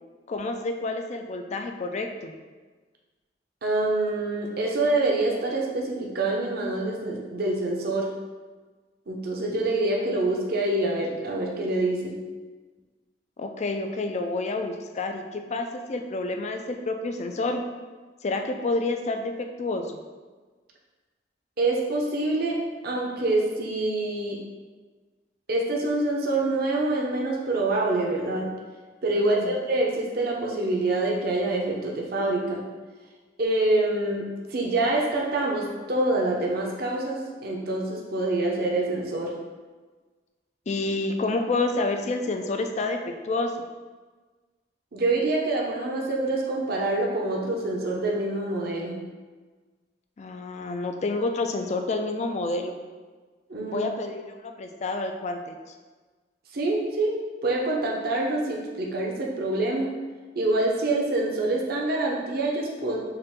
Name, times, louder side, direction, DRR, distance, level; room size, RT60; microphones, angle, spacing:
voice 1, 0.3-2.3 13.4-17.6 18.2-20.0 29.2-29.5 40.7-43.0 43.2-43.5 50.2-52.7 53.7-55.5, left 2 dB, 40° left, 5 dB, 0.4 m, -29 dB
voice 2, 3.6-8.1 9.1-12.2 21.6-22.6 22.8-24.4 25.5-28.5 29.0-32.6 33.4-39.3 44.9-49.0 53.5-53.9 56.5-59.9 60.4-63.0, right 2 dB, 55° right, -1 dB, 0.7 m, -26 dB
5.6 x 2.5 x 3.5 m, 1.4 s
head